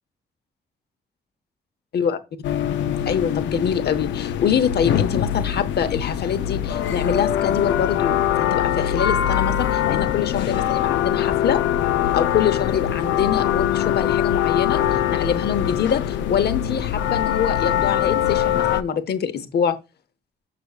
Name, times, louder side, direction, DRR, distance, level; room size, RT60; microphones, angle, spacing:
sound 1, 2.4-18.8, left 10 dB, 85° left, 0.4 m, -22 dB
voice 1, 3.1-11.6 12.1-19.8, left 7 dB, 60° left, 0.8 m, -24 dB
6.7 x 5.9 x 2.4 m
cardioid pair, 80°, 19 cm